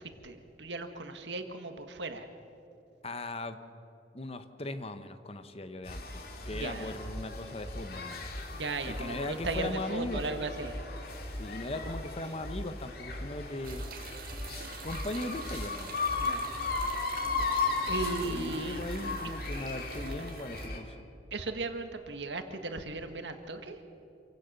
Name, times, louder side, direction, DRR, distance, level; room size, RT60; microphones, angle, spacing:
voice 1, 0.0-2.3 6.5-6.9 8.5-10.8 16.2-16.5 17.9-18.8 19.2-19.3 21.3-23.8, right 3 dB, 90° right, 7 dB, 1.7 m, -37 dB
voice 2, 3.0-3.6 4.1-8.2 8.9-10.4 11.4-13.8 14.8-16.3 18.2-21.1, left 2 dB, 35° left, 10 dB, 1.1 m, -39 dB
sound 1, 5.8-20.8, left 3 dB, 60° left, 2.5 m, -36 dB
sound 2, 13.6-20.7, right 5 dB, 55° right, 1.8 m, -46 dB
27.0 x 16.5 x 6.8 m, 2.9 s
head